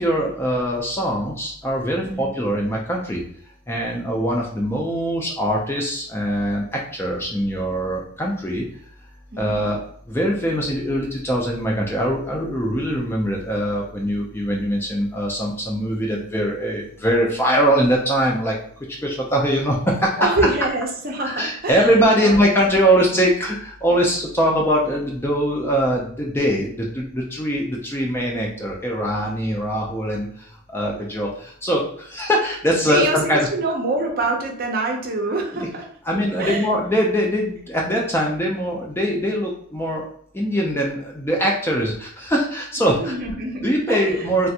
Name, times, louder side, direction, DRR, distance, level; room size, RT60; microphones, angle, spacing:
voice 1, 0.0-3.2 3.7-8.6 9.4-9.8 10.1-18.6 18.9-20.3 21.2-33.5 35.5-35.7 36.1-40.1 40.3-43.2 43.6-44.5, equal, 10° left, -2 dB, 0.4 m, -22 dB
voice 2, 20.2-22.5 32.9-35.8 36.1-36.7 42.8-44.3, right 2 dB, 45° right, 1 dB, 0.5 m, -25 dB
3.3 x 2.4 x 2.7 m, 0.64 s
head